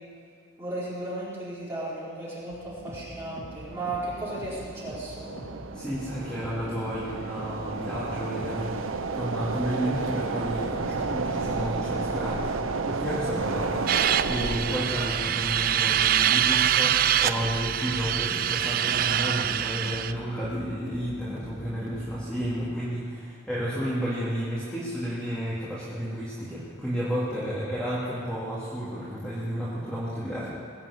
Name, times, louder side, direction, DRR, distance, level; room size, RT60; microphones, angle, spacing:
voice 1, 0.6-5.3, right 2 dB, 10° right, -9 dB, 4.9 m, -35 dB
sound 1, 2.5-22.5, equal, 75° left, 3.4 m, -43 dB
sound 2, 3.3-14.8, right 4 dB, 85° right, 0.7 m, -32 dB
voice 2, 5.7-30.5, equal, 5° left, -9 dB, 2.3 m, -32 dB
sound 3, 13.9-20.1, right 10 dB, 45° right, 0.4 m, -25 dB
20.5 x 7.5 x 8.2 m, 2.3 s
head